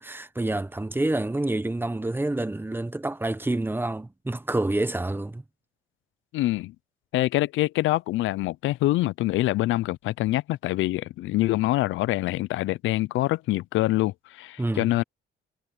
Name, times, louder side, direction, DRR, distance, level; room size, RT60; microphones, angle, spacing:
voice 1, 0.0-5.4 14.6-14.9, right 2 dB, 10° right, 1.2 m, -28 dB
voice 2, 6.3-6.7 7.1-15.0, left 17 dB, 80° left, 0.4 m, -25 dB
cardioid pair, 90°, 20 cm